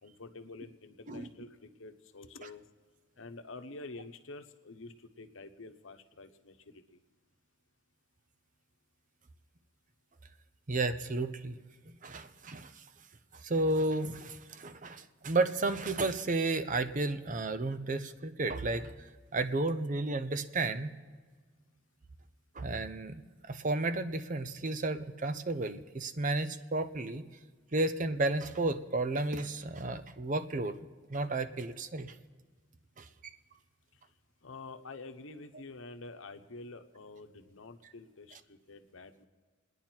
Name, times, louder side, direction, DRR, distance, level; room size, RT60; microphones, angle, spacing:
voice 1, 0.0-2.6 3.2-6.5 34.4-39.3, left 3 dB, 75° left, 7 dB, 1.0 m, -48 dB
voice 2, 10.7-11.6 11.9-12.7 13.4-18.9 19.3-20.9 22.6-23.2 23.5-27.2 27.7-30.8 31.1-32.1 33.0-33.1, right 2 dB, 40° right, 10 dB, 0.7 m, -32 dB
29.0 x 10.0 x 4.5 m, 1.5 s
head